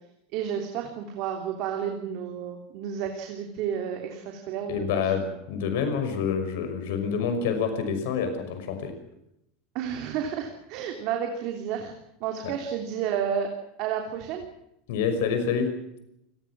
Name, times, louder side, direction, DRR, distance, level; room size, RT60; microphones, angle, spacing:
voice 1, 0.3-5.0 9.7-11.9 12.2-13.5 13.8-14.5, right 8 dB, 45° right, 3 dB, 3.2 m, -31 dB
voice 2, 4.7-8.9 12.4-12.5 14.9-15.7, left 6 dB, 65° left, 8 dB, 5.7 m, -27 dB
29.5 x 20.0 x 6.2 m, 0.81 s
supercardioid pair, 175°, 0 cm